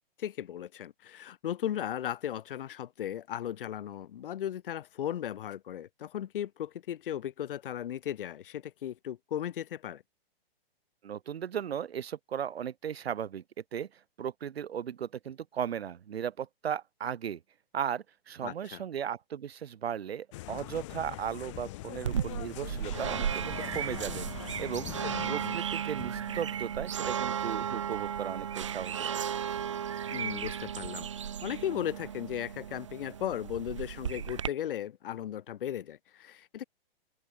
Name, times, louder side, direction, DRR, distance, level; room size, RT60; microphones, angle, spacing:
voice 1, 0.2-10.0 18.4-18.8 25.2-25.6 30.1-36.6, left 10 dB, 60° left, 0.9 m, -36 dB
voice 2, 11.0-13.4 13.7-13.9 14.2-17.4 17.7-29.1, right 9 dB, 85° right, 1.8 m, -36 dB
sound 1, 20.3-25.3, left 18 dB, 30° left, 2.6 m, -42 dB
sound 2, 22.0-34.5, right 8 dB, 30° right, 0.4 m, -35 dB
sound 3, 23.7-30.7 31.0-31.2 31.6-31.7 32.0-32.1 32.3-32.4 32.6-32.9 33.5-33.7 34.2-34.3, left 11 dB, 15° left, 5.9 m, -55 dB
open air
hypercardioid pair, 175°, 30 cm